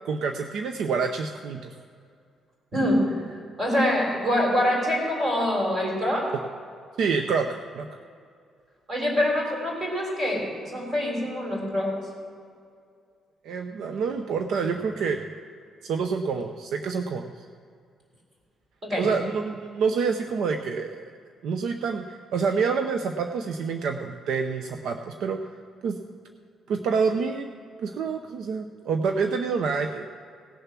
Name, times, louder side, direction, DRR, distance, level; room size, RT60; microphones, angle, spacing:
voice 1, 0.0-1.7 7.0-7.5 7.7-7.9 13.4-15.3 15.8-17.3 19.0-21.0 21.4-25.4 25.8-26.0 26.7-27.5 27.8-30.2, right 5 dB, 70° right, 6 dB, 0.6 m, -27 dB
voice 2, 2.7-3.2 3.6-6.3 8.9-12.0 18.8-19.1, left 1 dB, 30° right, -1 dB, 3.7 m, -25 dB
17.5 x 6.8 x 6.0 m, 2.3 s
cardioid pair, 165°, 0 cm